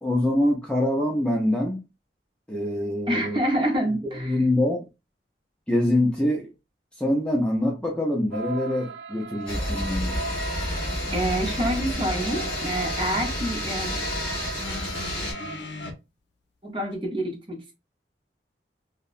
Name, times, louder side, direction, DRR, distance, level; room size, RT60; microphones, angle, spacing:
voice 1, 0.0-1.8 2.5-3.4 4.0-4.8 5.7-6.5 7.0-10.1, left 1 dB, 5° left, 0.4 m, -24 dB
voice 2, 3.1-4.4 11.1-14.0 16.6-17.7, right 1 dB, 30° right, 0.7 m, -27 dB
sound 1, 8.3-15.6, right 3 dB, 80° right, 0.4 m, -37 dB
sound 2, 9.5-15.3, left 1 dB, 30° left, 1.0 m, -30 dB
sound 3, 14.6-15.9 16.9-17.0, left 3 dB, 80° left, 0.5 m, -37 dB
2.8 x 2.0 x 2.4 m
head